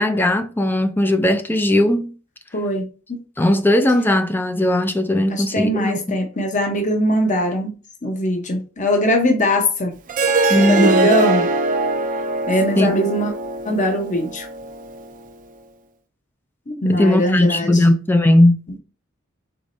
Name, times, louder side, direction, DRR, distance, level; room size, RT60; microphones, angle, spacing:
voice 1, 0.0-2.1 3.4-6.0 10.5-11.1 12.8-12.9 16.9-18.6, left 1 dB, 10° left, 0.4 m, -17 dB
voice 2, 2.5-3.2 5.3-7.7 8.0-9.9 10.5-11.5 12.5-13.3 13.6-14.5 16.7-17.8, left 1 dB, 35° left, 0.9 m, -21 dB
Harp, 10.1-15.3, right 2 dB, 40° right, 0.5 m, -22 dB
4.8 x 4.0 x 2.6 m
head